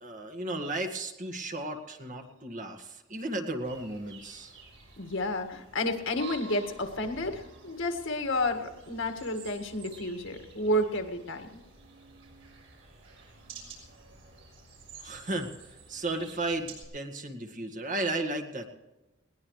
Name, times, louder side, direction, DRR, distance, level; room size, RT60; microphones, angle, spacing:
voice 1, 0.0-4.6 15.0-15.5 15.9-18.8, right 2 dB, 40° right, 5 dB, 1.8 m, -34 dB
sound 1, 3.6-16.8, right 4 dB, 65° right, 6.4 m, -50 dB
voice 2, 5.0-11.5, left 1 dB, 65° left, 6 dB, 1.9 m, -31 dB
21.0 x 18.5 x 3.2 m, 1.0 s
head